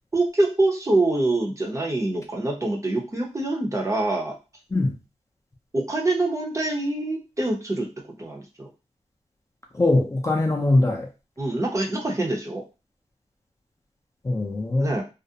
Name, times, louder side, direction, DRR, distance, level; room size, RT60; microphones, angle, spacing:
voice 1, 0.1-4.3 5.7-7.9 8.2-8.7 11.4-12.6 14.8-15.0, right 2 dB, 25° right, 0 dB, 0.6 m, -25 dB
voice 2, 9.7-11.1 14.2-14.9, left 2 dB, 25° left, 1 dB, 0.5 m, -21 dB
2.4 x 2.0 x 2.7 m, 0.29 s
wide cardioid pair, 100°, 12 cm